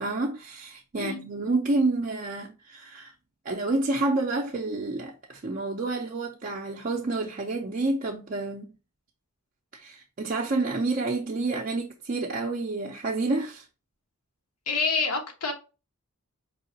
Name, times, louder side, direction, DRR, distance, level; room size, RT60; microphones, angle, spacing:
voice 1, 0.0-3.1 3.4-8.7 9.7-13.6, right 2 dB, 40° right, 0.5 m, -29 dB
voice 2, 14.7-15.5, left 4 dB, 90° left, 1.1 m, -27 dB
4.7 x 2.9 x 2.7 m
head